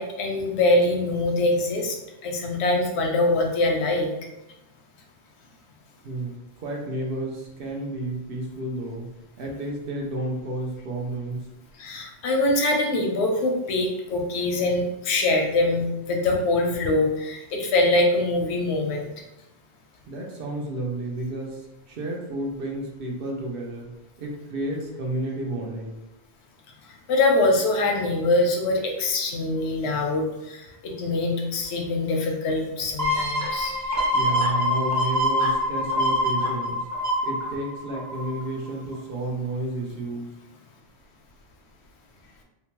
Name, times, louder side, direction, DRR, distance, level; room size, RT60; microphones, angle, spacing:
voice 1, 0.0-2.0 2.2-4.1 11.8-19.1 27.1-33.8, left 2 dB, 85° left, 1 dB, 0.9 m, -23 dB
voice 2, 6.0-9.1 9.4-11.4 20.1-21.6 21.9-23.9 24.2-26.0 34.1-36.9 37.2-40.3, right 1 dB, 60° right, -1 dB, 0.7 m, -31 dB
sound 1, 33.0-38.5 38.9-39.0, left 1 dB, 25° right, 0.4 m, -25 dB
2.8 x 2.1 x 2.9 m, 0.95 s
omnidirectional pair, 1.1 m